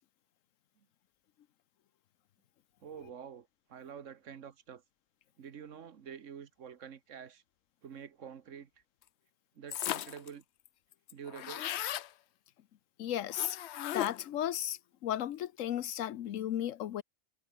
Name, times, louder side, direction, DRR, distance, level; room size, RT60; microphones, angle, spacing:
voice 1, 2.8-4.8 5.4-7.4 7.8-8.7 9.5-10.4 11.1-11.7, right 7 dB, 75° right, 1.5 m, -48 dB
sound 1, 9.7-10.3 10.7-10.8 10.9-12.1 13.3-14.3, left 12 dB, 65° left, 0.8 m, -37 dB
voice 2, 13.0-13.6 13.9-17.0, left 11 dB, 80° left, 1.1 m, -35 dB
omnidirectional pair, 1.3 m